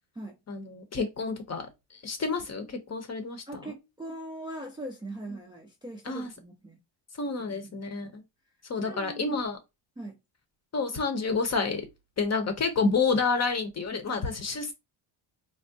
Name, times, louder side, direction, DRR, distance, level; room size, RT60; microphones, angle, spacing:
voice 1, 0.5-1.7 1.9-3.7 6.1-6.3 7.2-8.2 8.7-9.6 10.7-11.8 12.2-14.7, left 4 dB, 35° left, 0.7 m, -29 dB
voice 2, 3.5-6.8 7.5-8.1 8.9-9.4 10.0-10.2, right 1 dB, 10° right, 0.4 m, -41 dB
3.4 x 2.1 x 2.6 m
cardioid pair, 110°, 49 cm